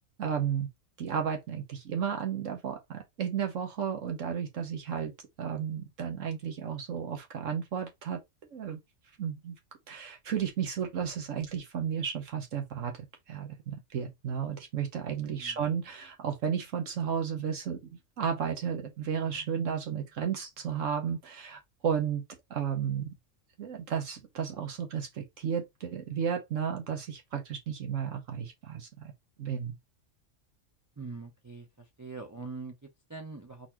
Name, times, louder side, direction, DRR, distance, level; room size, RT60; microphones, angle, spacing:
voice 1, 0.2-0.7 1.0-5.1 5.4-8.2 8.5-8.8 9.2-9.6 9.9-22.2 22.5-23.1 23.6-29.1 29.4-29.8, right 7 dB, 70° right, 1.2 m, -33 dB
voice 2, 31.0-33.7, right 4 dB, 25° right, 0.4 m, -43 dB
4.2 x 4.1 x 2.9 m
omnidirectional pair, 1.4 m